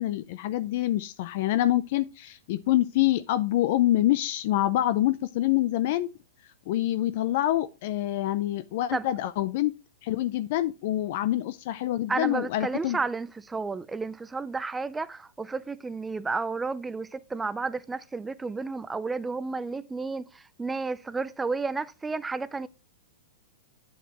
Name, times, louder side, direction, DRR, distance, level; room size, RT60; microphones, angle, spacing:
voice 1, 0.0-6.1 6.7-9.7 10.0-13.0, left 14 dB, 55° left, 0.5 m, -26 dB
voice 2, 12.1-22.7, right 4 dB, 10° right, 0.4 m, -32 dB
8.0 x 7.3 x 3.0 m
hypercardioid pair, 140°, 0 cm